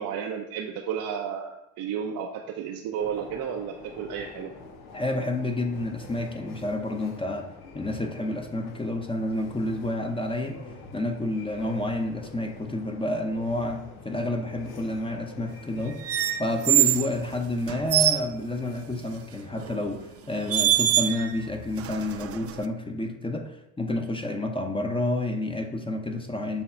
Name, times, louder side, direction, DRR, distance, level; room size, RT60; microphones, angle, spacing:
voice 1, 0.0-4.5, right 8 dB, 75° right, 1 dB, 0.8 m, -32 dB
sound 1, 3.0-22.2, left 4 dB, 90° left, 1.1 m, -46 dB
voice 2, 4.9-10.6 10.9-26.6, left 1 dB, 15° left, 4 dB, 0.8 m, -29 dB
sound 2, 16.0-17.1 17.7-18.2 19.6-19.8 20.5-21.4 21.8-22.6, right 12 dB, 45° right, 0.4 m, -24 dB
7.1 x 3.1 x 5.6 m, 0.90 s
cardioid pair, 85°, 36 cm